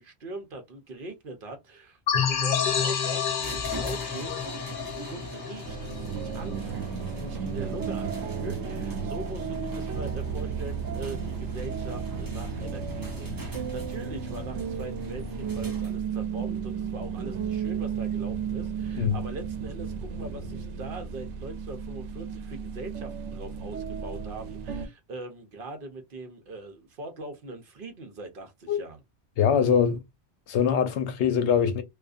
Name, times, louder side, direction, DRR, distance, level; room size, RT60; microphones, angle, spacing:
voice 1, 0.0-29.0, right 2 dB, 55° right, 0.8 m, -41 dB
sound 1, 2.1-6.5, left 7 dB, 50° left, 0.6 m, -29 dB
sound 2, 3.4-16.2, left 1 dB, 20° right, 0.7 m, -41 dB
sound 3, 5.7-24.9, right 6 dB, 90° right, 0.9 m, -33 dB
voice 2, 29.4-30.0 30.5-31.8, left 7 dB, 85° left, 0.9 m, -23 dB
2.5 x 2.4 x 2.3 m
omnidirectional pair, 1.2 m